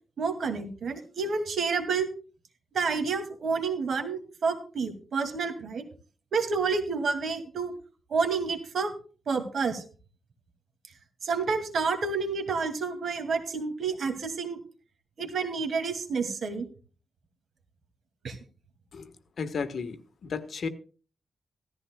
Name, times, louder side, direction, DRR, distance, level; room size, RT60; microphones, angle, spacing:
voice 1, 0.2-2.1 2.7-5.8 6.3-7.7 8.1-8.9 9.3-9.8 11.2-14.6 15.2-16.6 18.2-18.4, right 4 dB, 70° right, 6 dB, 2.3 m, -29 dB
voice 2, 18.9-20.7, left 5 dB, 60° left, 9 dB, 1.3 m, -34 dB
16.5 x 14.0 x 2.3 m, 0.37 s
wide cardioid pair, 135°, 0 cm